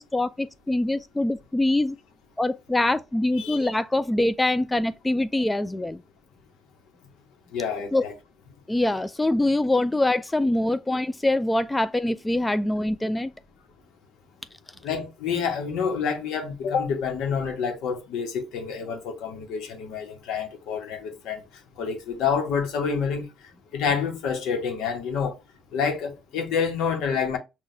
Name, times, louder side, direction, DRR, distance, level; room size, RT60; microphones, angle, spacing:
voice 1, 0.0-2.0 2.4-6.0 7.9-8.0 8.7-13.3, left 1 dB, 10° left, 0.3 m, -24 dB
voice 2, 7.5-8.1 14.8-21.4 21.8-23.3 23.7-25.4 25.7-27.4, left 6 dB, 85° left, 1.1 m, -28 dB
5.9 x 2.4 x 2.5 m
cardioid pair, 115°, 0 cm